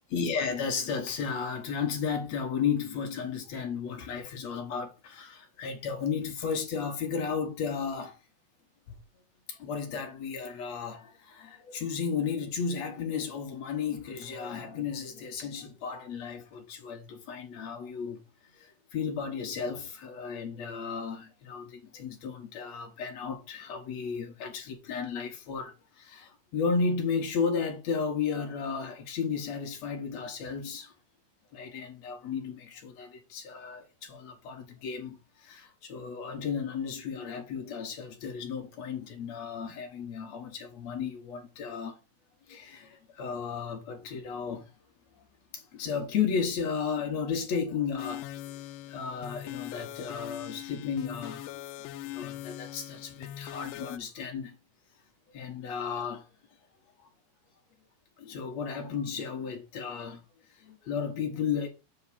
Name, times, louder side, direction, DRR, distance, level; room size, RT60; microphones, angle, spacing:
voice 1, 0.1-8.2 9.5-18.2 18.5-30.9 31.5-42.0 42.5-44.7 45.5-48.5 48.9-51.6 52.1-54.6 55.3-56.3 57.0-57.1 58.2-60.2 60.6-61.7, left 6 dB, 60° left, 2.2 m, -34 dB
sound 1, 48.0-54.0, left 13 dB, 80° left, 1.9 m, -41 dB
8.2 x 4.0 x 5.2 m
omnidirectional pair, 4.2 m